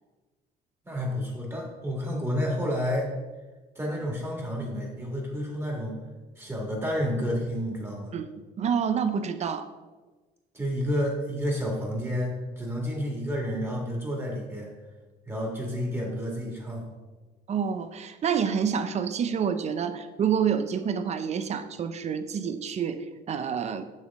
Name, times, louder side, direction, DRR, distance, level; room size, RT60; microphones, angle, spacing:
voice 1, 0.8-3.1 3.8-6.0 6.4-8.1 10.5-14.7 15.3-16.9, equal, 15° right, -1 dB, 1.9 m, -30 dB
voice 2, 8.6-9.7 17.5-23.8, right 7 dB, 40° right, 11 dB, 0.5 m, -28 dB
7.0 x 6.4 x 3.5 m, 1.3 s
cardioid pair, 110°, 17 cm